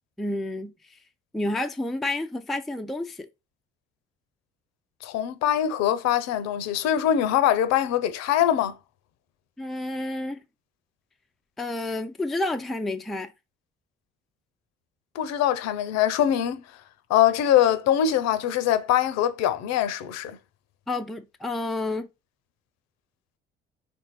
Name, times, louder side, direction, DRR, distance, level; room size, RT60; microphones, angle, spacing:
voice 1, 0.2-0.7 1.3-3.3 9.6-10.4 11.6-13.3 20.9-22.1, left 2 dB, ahead, 0.4 m, -30 dB
voice 2, 5.0-8.7 15.2-16.6 17.1-20.4, left 10 dB, 60° left, 0.6 m, -23 dB
3.5 x 2.6 x 4.6 m
hypercardioid pair, 50°, 30 cm